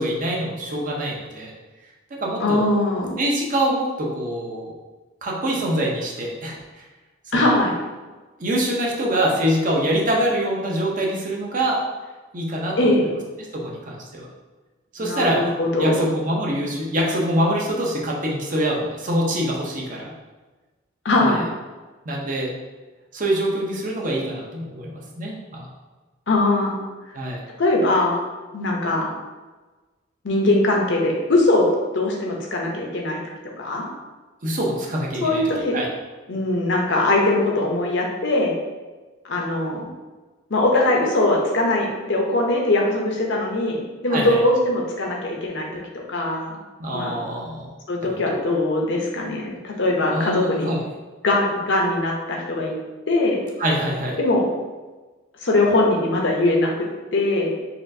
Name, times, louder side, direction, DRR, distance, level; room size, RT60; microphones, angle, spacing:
voice 1, 0.0-1.5 2.2-2.6 3.2-4.7 5.2-6.6 7.3-7.6 8.4-11.8 12.3-12.9 13.5-14.2 14.9-15.4 15.8-20.1 21.2-21.4 22.1-22.5 23.1-25.7 27.1-27.4 34.4-35.4 35.7-35.9 44.1-44.4 46.8-47.7 48.0-48.2 50.1-50.8 53.6-54.2, right 1 dB, 40° right, -2 dB, 0.6 m, -24 dB
voice 2, 2.4-3.2 7.3-7.7 12.8-13.1 15.0-16.1 21.0-21.4 26.3-26.7 27.6-28.2 28.5-29.1 30.2-31.7 31.9-33.2 33.6-33.9 35.2-35.8 36.3-38.5 39.2-39.8 40.5-46.6 46.9-47.2 47.9-50.7 51.2-52.7 53.1-53.4 54.2-54.5 55.4-56.9 57.1-57.5, left 2 dB, 60° left, 0 dB, 0.6 m, -21 dB
4.2 x 2.5 x 2.6 m, 1.2 s
head